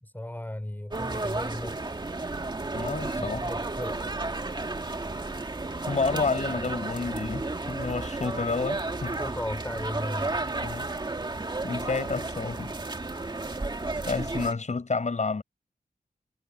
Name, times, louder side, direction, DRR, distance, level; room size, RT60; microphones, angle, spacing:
voice 1, 0.0-2.0 3.1-4.1 9.1-10.4, left 1 dB, 10° left, 3.9 m, -36 dB
sound 1, 0.9-14.5, right 2 dB, 30° right, 2.1 m, -33 dB
voice 2, 2.7-3.5 5.9-9.2 10.6-10.9 11.6-12.7 14.1-15.4, left 4 dB, 50° left, 7.0 m, -30 dB
wide cardioid pair, 110°, 15 cm